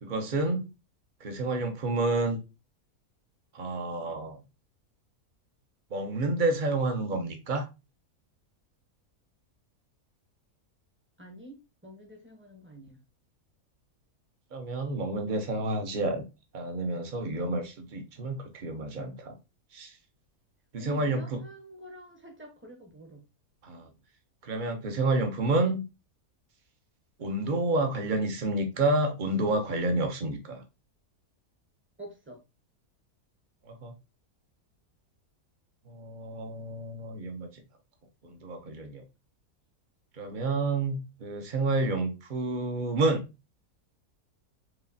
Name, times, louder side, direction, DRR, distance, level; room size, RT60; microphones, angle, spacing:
voice 1, 0.0-0.7 1.2-2.4 3.5-4.4 5.9-7.7 14.5-16.2 16.5-19.4 19.7-19.9 20.7-21.4 23.6-23.9 24.4-25.8 27.2-30.6 33.7-33.9 35.9-37.5 38.2-39.0 40.2-43.2, right 2 dB, 40° right, 0.8 m, -29 dB
voice 2, 11.2-13.0 20.7-23.2 32.0-32.4, right 2 dB, 10° right, 0.8 m, -46 dB
5.0 x 3.1 x 2.7 m
omnidirectional pair, 1.6 m